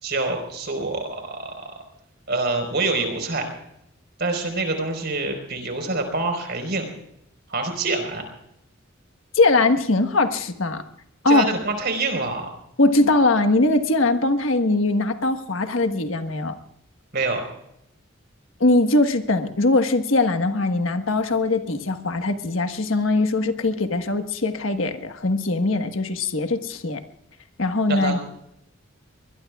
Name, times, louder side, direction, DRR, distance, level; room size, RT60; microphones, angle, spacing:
voice 1, 0.0-1.7 2.3-3.5 4.2-6.9 7.5-8.2 11.3-12.5 17.1-17.4 27.9-28.2, right 3 dB, 55° right, 5 dB, 4.6 m, -26 dB
voice 2, 9.3-10.8 11.2-11.5 12.8-16.6 18.6-27.0 27.6-28.2, left 2 dB, 85° left, 7 dB, 1.4 m, -21 dB
23.5 x 20.5 x 2.4 m, 0.76 s
head